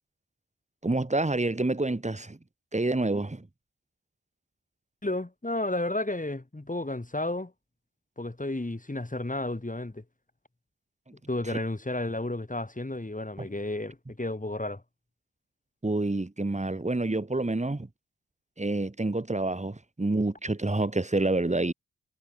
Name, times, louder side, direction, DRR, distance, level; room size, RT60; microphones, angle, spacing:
voice 1, 0.8-2.4 2.7-3.5 13.4-13.5 15.8-17.9 18.6-21.7, right 2 dB, 20° right, 2.4 m, -28 dB
voice 2, 5.0-7.5 8.2-10.0 11.3-14.8, left 2 dB, 20° left, 5.5 m, -32 dB
cardioid pair, 45°, 36 cm